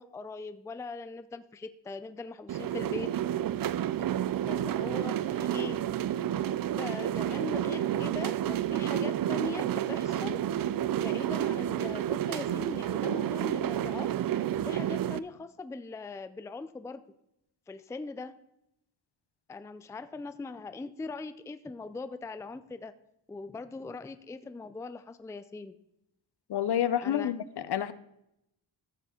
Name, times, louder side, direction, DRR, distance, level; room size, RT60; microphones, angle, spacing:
voice 1, 0.0-3.1 4.5-5.8 6.7-10.4 11.0-14.1 14.6-17.0 17.7-18.3 19.5-22.9 23.3-25.8 27.0-27.3, left 3 dB, 5° left, 12 dB, 0.4 m, -40 dB
sound 1, 2.5-15.2, right 11 dB, 50° right, 0.5 m, -30 dB
voice 2, 26.5-27.9, left 10 dB, 60° left, 14 dB, 0.8 m, -29 dB
14.5 x 7.0 x 4.3 m, 0.80 s
cardioid pair, 110°, 45 cm